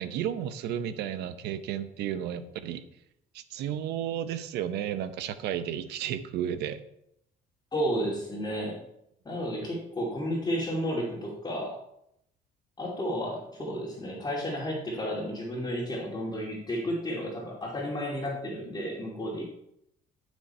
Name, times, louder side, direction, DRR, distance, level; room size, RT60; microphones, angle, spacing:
voice 1, 0.0-2.8 3.3-6.8, right 10 dB, 80° right, 12 dB, 0.8 m, -33 dB
voice 2, 7.7-8.8 9.2-11.7 12.8-19.4, equal, 25° left, -3 dB, 2.4 m, -32 dB
11.0 x 6.2 x 4.3 m, 0.78 s
cardioid pair, 110°, 17 cm